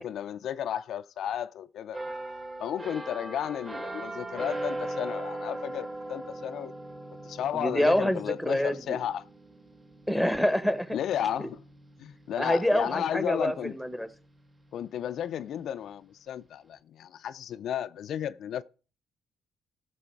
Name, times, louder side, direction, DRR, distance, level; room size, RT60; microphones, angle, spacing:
voice 1, 0.0-2.0 2.6-6.7 7.2-9.3 10.9-11.6 12.0-13.7 14.7-18.6, left 10 dB, 70° left, 0.4 m, -33 dB
sound 1, 1.9-13.5 13.9-14.2, right 1 dB, 30° right, 3.2 m, -40 dB
voice 2, 7.5-9.0 10.1-11.0 11.4-11.5 12.4-14.1, equal, 5° right, 1.3 m, -26 dB
15.0 x 6.1 x 4.6 m
cardioid pair, 90°, 0 cm